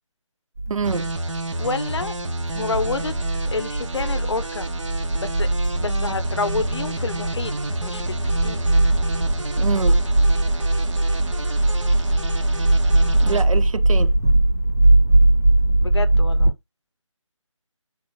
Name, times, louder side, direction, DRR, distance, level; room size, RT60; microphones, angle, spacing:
sound 1, 0.6-16.5, right 2 dB, 30° right, 0.6 m, -20 dB
voice 1, 0.7-1.1 9.6-10.0 13.2-14.2, right 5 dB, 80° right, 0.6 m, -26 dB
sound 2, 0.8-13.4, right 2 dB, 65° right, 1.0 m, -31 dB
voice 2, 1.6-2.1 2.5-3.1 3.5-4.7 5.2-5.5 5.8-7.5 7.8-8.7 15.8-16.6, left 4 dB, 55° left, 0.6 m, -28 dB
4.0 x 2.7 x 3.7 m
figure-of-eight pair, 170°, 17 cm